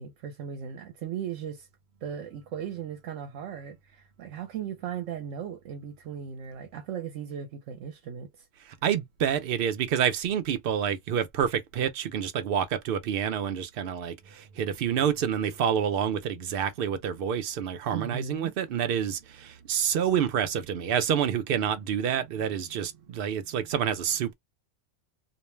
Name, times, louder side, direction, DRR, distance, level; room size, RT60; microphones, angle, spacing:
voice 1, 0.0-1.7 2.0-8.5 17.9-18.5, right 8 dB, 80° right, 1.0 m, -37 dB
voice 2, 8.8-24.3, right 8 dB, 60° right, 0.6 m, -28 dB
2.5 x 2.1 x 3.1 m
omnidirectional pair, 1.3 m